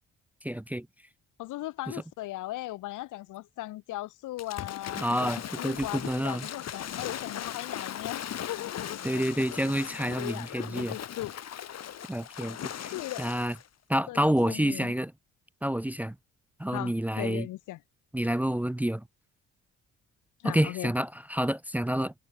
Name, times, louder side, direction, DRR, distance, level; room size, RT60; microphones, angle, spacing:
voice 1, 0.4-0.9 1.9-2.0 5.0-6.5 9.0-11.0 12.1-12.9 13.2-13.6 13.9-15.1 15.6-16.2 16.6-17.5 18.1-19.0 20.4-22.1, right 1 dB, 5° right, 0.5 m, -28 dB
voice 2, 1.4-5.0 5.6-9.0 10.2-11.3 12.9-13.3 14.1-14.9 16.7-17.8 20.4-20.9, left 16 dB, 85° left, 1.6 m, -38 dB
Waves surf / Splash splatter, 4.4-13.7, left 10 dB, 60° left, 2.3 m, -38 dB
cardioid pair, 90°, 30 cm